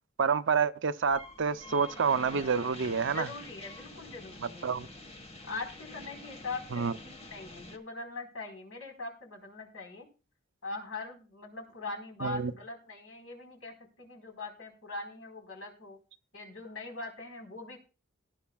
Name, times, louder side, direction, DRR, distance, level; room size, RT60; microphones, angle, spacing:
voice 1, 0.2-3.3 4.6-4.9 6.7-6.9 12.2-12.5, right 5 dB, 65° right, 0.6 m, -28 dB
sound 1, 1.0-7.8, left 2 dB, 30° left, 1.5 m, -47 dB
voice 2, 3.0-4.8 5.5-10.1 10.6-16.0 16.3-17.8, left 3 dB, 90° left, 4.2 m, -42 dB
19.0 x 10.0 x 2.3 m
head